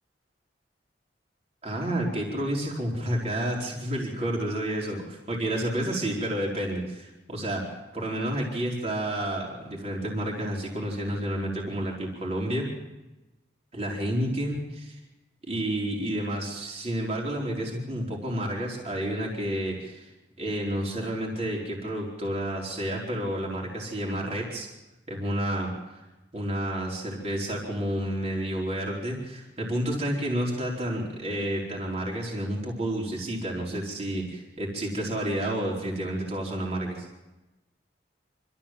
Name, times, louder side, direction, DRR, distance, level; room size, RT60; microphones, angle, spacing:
voice 1, 1.6-12.7 13.7-15.0 15.5-20.1 20.4-24.7 25.1-26.0 26.3-37.1, right 1 dB, 35° right, -2 dB, 4.4 m, -30 dB
26.5 x 14.0 x 7.6 m, 1.0 s
head